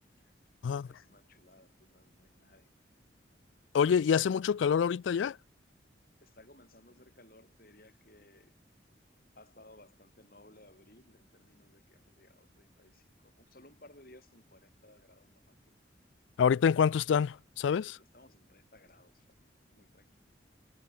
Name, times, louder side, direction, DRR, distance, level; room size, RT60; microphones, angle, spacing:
voice 1, 0.8-2.8 6.2-8.6 9.3-15.8 17.8-20.2, left 1 dB, 50° left, 7.7 m, -60 dB
voice 2, 3.7-5.4 16.4-17.9, left 7 dB, 90° left, 0.3 m, -26 dB
head